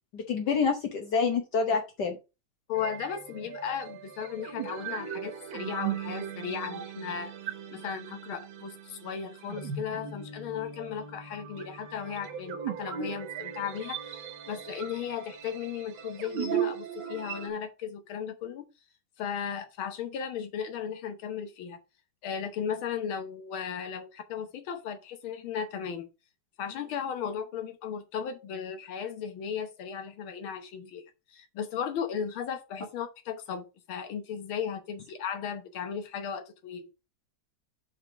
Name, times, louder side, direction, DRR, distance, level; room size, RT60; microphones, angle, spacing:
voice 1, 0.1-2.2, left 5 dB, 60° left, 1.5 m, -27 dB
voice 2, 2.7-7.3 7.7-18.7 19.2-21.8 22.2-26.1 26.6-31.0 31.3-36.9, left 7 dB, 80° left, 1.8 m, -36 dB
sound 1, 2.7-17.5, right 8 dB, 70° right, 1.7 m, -38 dB
5.0 x 4.9 x 5.8 m
omnidirectional pair, 2.2 m